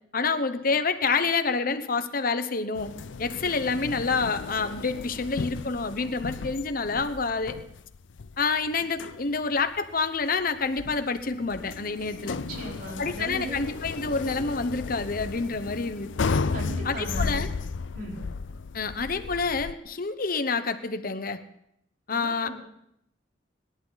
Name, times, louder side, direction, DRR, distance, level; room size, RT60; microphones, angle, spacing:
voice 1, 0.1-2.9 3.2-7.6 8.4-12.4 13.0-16.4 16.8-17.5 18.7-21.4 22.1-22.6, left 4 dB, 50° left, 10 dB, 1.0 m, -28 dB
sound 1, 2.7-19.7, left 4 dB, 80° left, 0.5 m, -34 dB
voice 2, 12.3-13.6 16.5-17.5 17.9-18.2 22.1-22.6, right 1 dB, 50° right, -2 dB, 4.3 m, -37 dB
26.0 x 11.0 x 4.1 m, 0.76 s
head